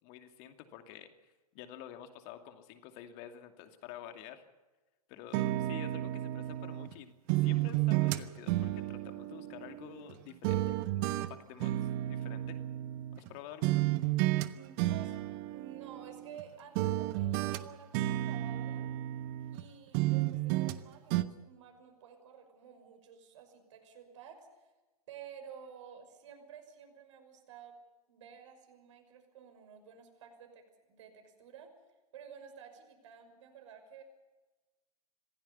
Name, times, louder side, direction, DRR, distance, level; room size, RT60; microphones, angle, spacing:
voice 1, 0.0-1.1 1.5-4.4 5.1-12.6 13.1-13.8, left 10 dB, 40° left, 6 dB, 2.6 m, -49 dB
sound 1, 5.3-6.9 7.3-10.1 10.4-13.3 13.6-14.5 14.8-16.4 16.8-19.6 19.9-20.8 21.1-21.2, right 15 dB, 35° right, 1.2 m, -32 dB
voice 2, 14.5-15.2 15.5-18.9 19.5-24.7 25.1-27.8 28.1-31.7 32.1-34.0, right 8 dB, 55° right, 5 dB, 6.0 m, -52 dB
26.0 x 16.5 x 7.2 m, 1.2 s
figure-of-eight pair, 110°, 19 cm